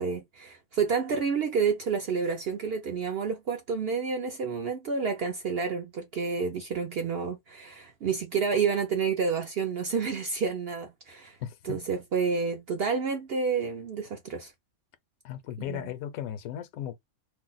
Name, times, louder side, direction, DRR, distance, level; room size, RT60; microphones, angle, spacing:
voice 1, 0.0-11.4 11.6-14.5 15.7-15.8, right 5 dB, 60° right, 0.6 m, -29 dB
voice 2, 11.4-11.8 15.2-17.0, left 10 dB, 80° left, 1.0 m, -36 dB
2.6 x 2.1 x 3.8 m
omnidirectional pair, 1.5 m